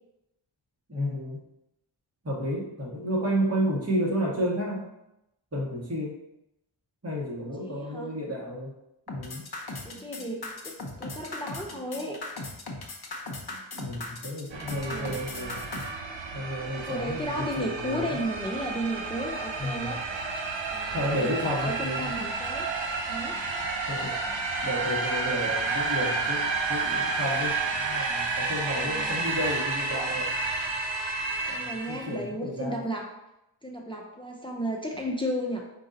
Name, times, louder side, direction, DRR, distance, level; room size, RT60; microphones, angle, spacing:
voice 1, 0.9-1.4 2.2-4.9 5.5-6.2 7.0-8.7 9.1-9.5 13.8-15.8 16.3-18.2 19.6-19.9 20.9-22.3 23.9-30.3 31.5-32.8, equal, 30° right, -5 dB, 1.7 m, -32 dB
voice 2, 7.6-8.1 9.8-12.2 14.8-15.2 16.9-20.0 20.7-22.7 23.1-23.4 28.9-29.2 31.5-33.1 33.6-35.6, equal, 10° left, 0 dB, 0.6 m, -34 dB
sound 1, 9.1-15.9, left 2 dB, 50° left, 0.9 m, -37 dB
sound 2, 14.5-32.2, right 3 dB, 70° right, 0.7 m, -31 dB
5.0 x 2.7 x 3.9 m, 0.86 s
wide cardioid pair, 55°, 47 cm